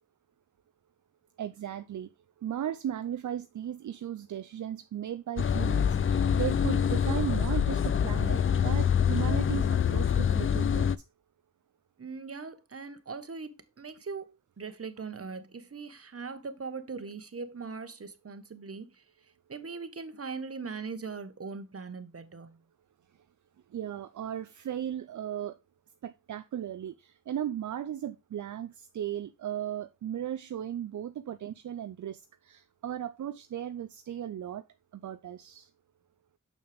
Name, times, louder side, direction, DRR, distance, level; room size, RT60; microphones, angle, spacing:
voice 1, 1.4-2.1 2.4-10.9 23.7-25.6 26.0-34.6 35.0-35.7, right 10 dB, 70° right, 0.5 m, -36 dB
sound 1, 5.4-11.0, left 8 dB, 45° left, 0.4 m, -26 dB
voice 2, 12.0-19.0 19.5-22.6, right 4 dB, 50° right, 1.2 m, -40 dB
6.5 x 6.3 x 3.4 m
cardioid pair, 50°, 31 cm